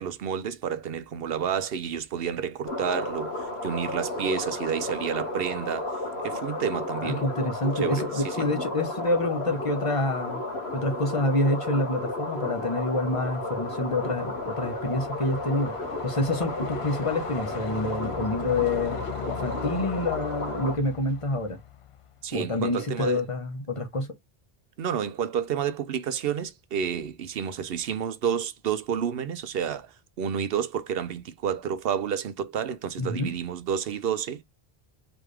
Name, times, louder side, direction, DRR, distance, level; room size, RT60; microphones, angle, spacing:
voice 1, 0.0-5.9 6.2-7.2 7.8-8.5 22.2-23.2 24.8-34.4, right 8 dB, 75° right, 0.8 m, -30 dB
sound 1, 2.7-20.8, left 2 dB, 80° left, 2.0 m, -33 dB
voice 2, 7.0-10.4 10.7-15.7 16.0-19.0 19.3-21.6 22.3-24.1 33.0-33.3, left 2 dB, 30° left, 1.2 m, -27 dB
Truck, 12.9-22.3, left 9 dB, 50° left, 0.4 m, -41 dB
4.0 x 3.5 x 3.3 m
omnidirectional pair, 1.0 m